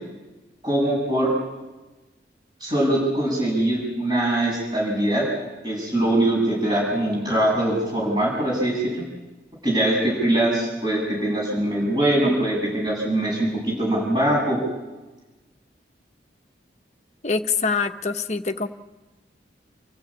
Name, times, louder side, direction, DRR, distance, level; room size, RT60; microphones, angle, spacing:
voice 1, 0.6-1.3 2.6-5.3 5.6-9.0 9.6-14.6, right 1 dB, 25° right, -3 dB, 7.7 m, -22 dB
voice 2, 17.2-18.7, left 4 dB, 40° left, 7 dB, 1.1 m, -24 dB
29.5 x 15.5 x 8.6 m, 1.2 s
head